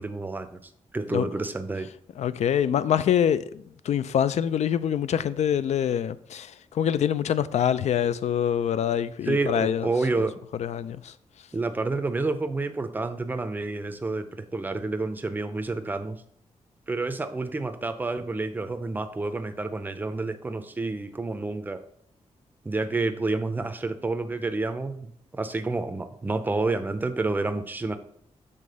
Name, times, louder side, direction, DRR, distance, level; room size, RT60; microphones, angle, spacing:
voice 1, 0.0-1.9 9.3-10.4 11.5-14.2 14.5-16.2 16.9-21.8 22.6-28.0, right 3 dB, 15° right, 0.5 m, -29 dB
voice 2, 2.2-9.9 10.6-11.1, left 9 dB, 70° left, 0.4 m, -25 dB
6.6 x 3.6 x 5.3 m
wide cardioid pair, 145°, 12 cm